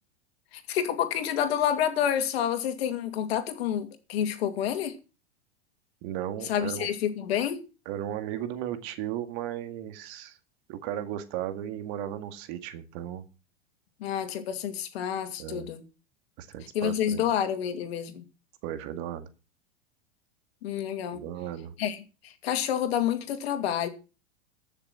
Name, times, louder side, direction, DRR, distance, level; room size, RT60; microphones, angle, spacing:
voice 1, 0.5-4.9 6.4-7.6 14.0-15.8 16.7-18.2 20.6-21.2 21.8-23.9, left 9 dB, 70° left, 2.5 m, -29 dB
voice 2, 6.0-6.9 7.9-10.4 10.7-13.2 15.4-15.7 16.4-17.3 18.6-19.3 21.1-21.7, right 11 dB, 50° right, 2.0 m, -35 dB
14.0 x 6.8 x 6.1 m
hypercardioid pair, 110°, 32 cm